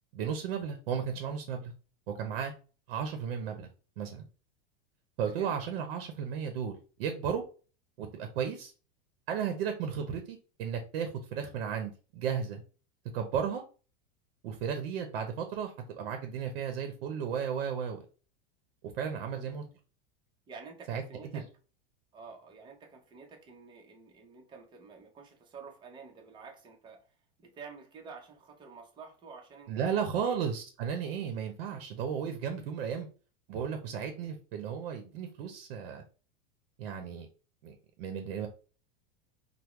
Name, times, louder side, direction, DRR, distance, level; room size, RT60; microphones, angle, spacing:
voice 1, 0.1-1.7 2.2-2.5 2.9-3.7 4.0-4.3 5.2-7.4 8.0-8.7 9.3-12.6 13.1-13.6 14.4-18.0 19.0-19.6 20.9-21.0 21.3-21.4 29.7-33.1 33.5-36.0 36.8-37.3 37.6-38.5, right 7 dB, 75° right, 0.7 m, -34 dB
voice 2, 19.1-19.5 20.5-21.4 22.1-29.8 30.1-30.4, right 5 dB, 15° right, 0.6 m, -50 dB
3.5 x 2.0 x 2.9 m
supercardioid pair, 145°, 30 cm